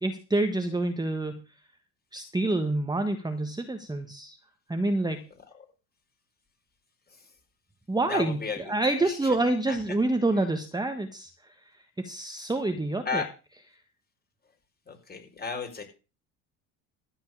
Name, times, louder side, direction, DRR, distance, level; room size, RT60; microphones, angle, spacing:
voice 1, 0.0-1.4 2.1-4.4 4.7-5.2 7.9-8.4 8.7-11.3 12.0-13.2, right 2 dB, 10° right, 7 dB, 1.4 m, -27 dB
voice 2, 8.1-9.4 9.7-9.8 13.0-13.3 14.9-15.8, left 5 dB, 20° left, 3 dB, 5.0 m, -34 dB
14.0 x 4.6 x 8.6 m, 0.33 s
hypercardioid pair, 75°, 44 cm